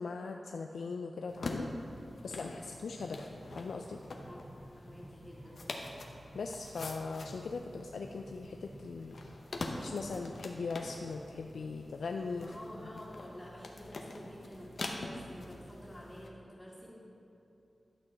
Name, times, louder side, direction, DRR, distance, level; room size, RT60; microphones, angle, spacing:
voice 1, 0.0-1.9 2.2-3.3 3.5-4.0 6.3-9.2 9.7-12.5, left 4 dB, 90° left, 3 dB, 0.3 m, -40 dB
sound 1, 1.3-16.3, left 2 dB, 70° left, 0.8 m, -45 dB
sound 2, 2.9-11.7, right 1 dB, 40° right, 1.7 m, -55 dB
voice 2, 4.2-5.6 12.4-17.0, equal, 20° left, -10 dB, 1.9 m, -50 dB
11.5 x 6.2 x 4.4 m, 2.8 s
cardioid pair, 50°, 0 cm